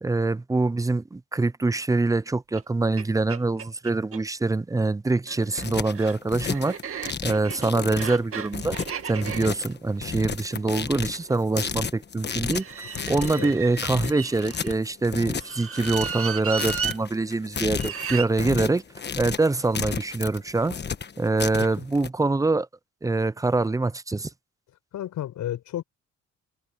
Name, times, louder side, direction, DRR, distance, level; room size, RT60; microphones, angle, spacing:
voice 1, 0.0-6.7 7.2-8.8 9.1-12.7 13.1-18.8 19.2-20.8 21.2-22.7 23.0-24.3, right 3 dB, 10° right, 0.5 m, -24 dB
sound 1, 2.5-2.6 3.0-3.1 3.3-4.2 5.1-11.3 12.5-14.7 15.4-17.0 17.7-18.3, right 7 dB, 45° right, 2.3 m, -35 dB
sound 2, 5.3-22.1, left 6 dB, 35° left, 1.3 m, -33 dB
voice 2, 12.9-13.5 21.6-21.7 24.9-25.8, left 12 dB, 75° left, 5.0 m, -33 dB
cardioid pair, 90°, 30 cm